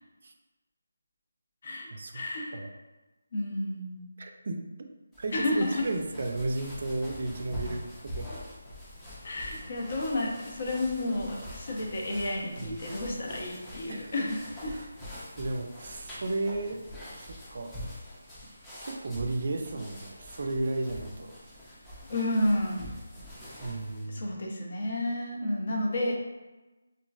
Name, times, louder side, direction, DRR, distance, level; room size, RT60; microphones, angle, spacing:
voice 1, 1.6-2.6 3.3-4.1 5.3-5.8 9.2-14.7 22.1-22.9 24.1-26.1, left 1 dB, 50° left, -1 dB, 0.6 m, -31 dB
voice 2, 4.2-4.9 5.2-8.3 12.6-12.8 13.9-14.3 14.7-14.9 15.4-16.8 17.2-17.8 18.8-21.4 23.6-24.2, right 2 dB, 55° right, 4 dB, 0.4 m, -34 dB
sound 1, 5.1-24.1, equal, 5° left, 0.5 m, -44 dB
3.0 x 2.4 x 2.3 m, 1.1 s
figure-of-eight pair, 160°, 0 cm